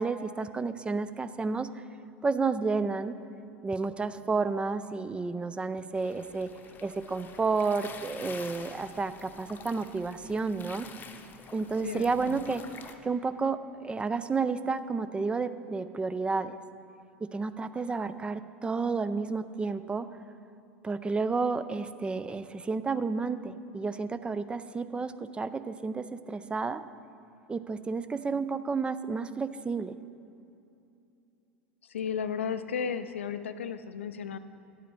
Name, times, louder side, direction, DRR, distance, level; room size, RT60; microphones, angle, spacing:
voice 1, 0.0-1.8 2.2-3.2 3.6-6.5 6.8-10.9 11.5-12.6 13.0-16.6 17.2-20.1 20.8-26.8 27.5-29.9, right 4 dB, 15° right, 13 dB, 0.4 m, -31 dB
sound 1, 6.0-13.0, left 5 dB, 30° left, 0.8 m, -48 dB
voice 2, 11.8-12.4 31.9-34.4, left 7 dB, 75° left, 12 dB, 0.5 m, -34 dB
11.0 x 8.3 x 4.4 m, 2.7 s
figure-of-eight pair, 80°, 7 cm